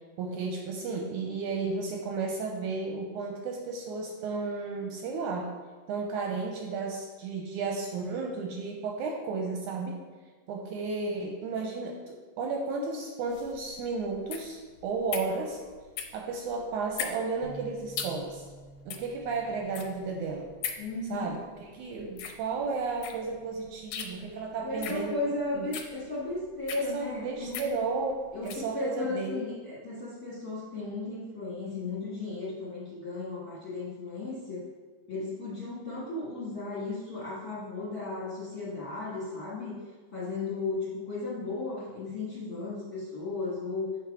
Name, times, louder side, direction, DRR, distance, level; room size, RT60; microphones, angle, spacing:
voice 1, 0.2-5.5 5.9-10.0 10.5-15.6 16.1-18.5 18.9-20.5 21.1-21.4 21.7-25.2 25.6-25.7 26.9-28.2 28.4-29.5, right 4 dB, 75° right, 1 dB, 1.9 m, -33 dB
sound 1, 13.3-28.7, left 7 dB, 80° left, 2.1 m, -41 dB
Bass guitar, 17.4-23.7, right 3 dB, 55° right, 1.6 m, -52 dB
voice 2, 20.8-21.3 24.6-27.8 28.3-34.7 35.1-39.8 40.1-43.9, left 3 dB, 35° left, -7 dB, 1.7 m, -35 dB
6.7 x 4.8 x 4.8 m, 1.4 s
omnidirectional pair, 3.8 m